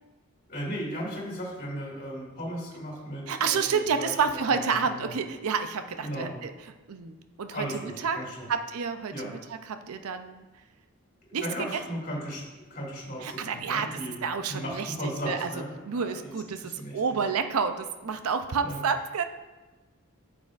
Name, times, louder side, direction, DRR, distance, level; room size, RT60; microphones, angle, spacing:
voice 1, 0.5-5.1 6.0-6.4 7.5-8.5 9.1-9.3 11.4-14.2 14.5-16.3 16.6-17.0 18.6-18.8, equal, 40° left, -3 dB, 2.2 m, -36 dB
voice 2, 3.3-8.2 8.5-10.5 11.3-11.8 13.2-15.5 15.8-19.2, right 5 dB, 85° right, 9 dB, 0.5 m, -30 dB
9.1 x 7.4 x 2.5 m, 1.2 s
head